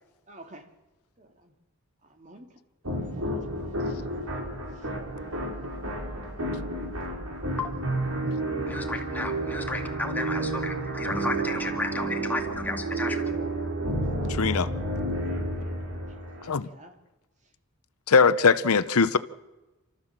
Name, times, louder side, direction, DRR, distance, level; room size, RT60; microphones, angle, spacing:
voice 1, 0.3-0.6 1.2-1.5 2.0-2.5 3.2-4.2 15.7-16.0 16.6-17.0, right 1 dB, 35° right, 2.4 m, -51 dB
sound 1, 2.8-16.5, right 1 dB, 75° right, 4.7 m, -31 dB
voice 2, 7.6-8.0 8.7-13.3, left 2 dB, 10° left, 2.2 m, -33 dB
voice 3, 14.3-14.7 16.5-16.7 18.1-19.2, left 5 dB, 85° left, 0.8 m, -20 dB
29.0 x 13.5 x 7.4 m
head